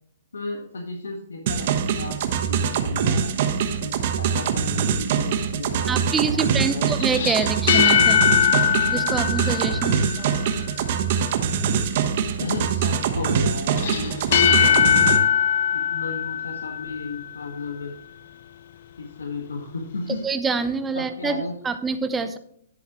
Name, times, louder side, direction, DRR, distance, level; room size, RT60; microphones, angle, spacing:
voice 1, 0.3-3.5 3.8-6.9 9.8-10.1 11.6-11.9 12.4-15.1 15.7-17.9 19.0-20.2 20.9-21.5, left 3 dB, 85° left, 3 dB, 1.5 m, -34 dB
sound 1, 1.5-15.2, right 7 dB, 50° right, 1.1 m, -24 dB
voice 2, 5.9-8.2 8.9-10.3 20.2-22.4, right 5 dB, 10° right, 9 dB, 0.8 m, -26 dB
sound 2, 7.0-10.5 13.8-17.3, left 9 dB, 55° left, 0.7 m, -21 dB
10.5 x 7.8 x 3.0 m, 0.67 s
hypercardioid pair, 135°, 0 cm